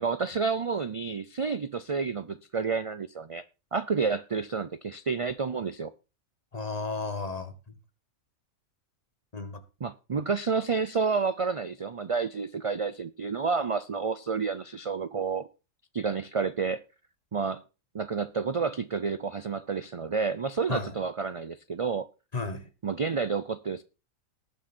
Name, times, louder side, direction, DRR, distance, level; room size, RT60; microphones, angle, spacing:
voice 1, 0.0-3.4 3.7-5.9 9.8-15.5 15.9-16.8 17.3-17.6 17.9-22.1 22.8-23.8, right 5 dB, 50° right, 0.4 m, -30 dB
voice 2, 6.5-7.8 9.3-9.6 20.7-20.9 22.3-22.7, left 3 dB, 30° left, 1.4 m, -33 dB
19.0 x 6.4 x 4.4 m
omnidirectional pair, 1.4 m